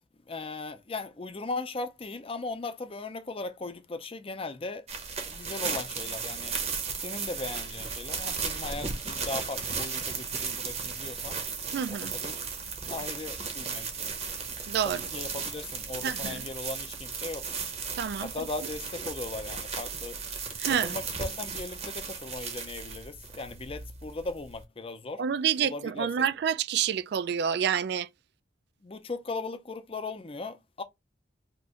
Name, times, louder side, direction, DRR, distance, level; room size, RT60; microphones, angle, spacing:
voice 1, 0.3-4.8 5.3-6.6 7.0-11.4 11.9-12.4 12.9-14.1 14.8-17.5 18.2-20.2 20.8-25.2 25.6-26.3 28.8-30.8, left 3 dB, 30° left, 0.5 m, -38 dB
sound 1, 4.9-24.6, right 5 dB, 40° right, 0.7 m, -35 dB
voice 2, 11.7-12.1 14.7-15.0 16.0-16.4 18.0-18.3 20.6-21.0 25.2-28.1, right 8 dB, 65° right, 0.3 m, -28 dB
2.9 x 2.5 x 3.6 m
head